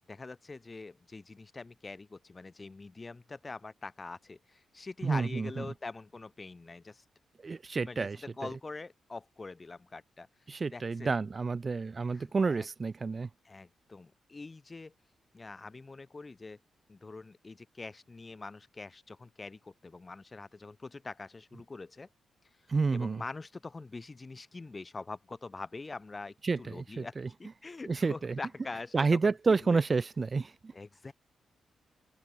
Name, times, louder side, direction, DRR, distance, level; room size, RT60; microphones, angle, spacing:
voice 1, 0.0-7.0 7.8-10.3 10.7-11.1 12.1-12.7 13.4-14.9 15.3-16.6 16.9-22.1 22.9-29.8 30.7-31.1, left 3 dB, 30° left, 1.0 m, -44 dB
voice 2, 5.0-5.6 7.4-8.2 10.5-13.3 22.7-23.2 26.4-27.1 27.9-28.4 28.9-30.7, right 4 dB, 35° right, 0.5 m, -29 dB
open air
cardioid pair, 90°, 0 cm